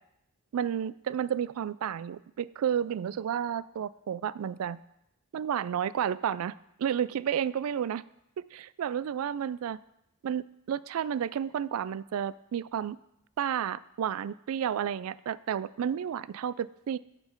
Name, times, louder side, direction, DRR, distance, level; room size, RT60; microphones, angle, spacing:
voice 1, 0.5-4.8 5.3-6.5 6.8-8.0 8.4-9.8 10.2-13.0 13.4-17.0, right 8 dB, 70° right, 19 dB, 0.3 m, -31 dB
11.0 x 6.8 x 4.4 m, 0.82 s
head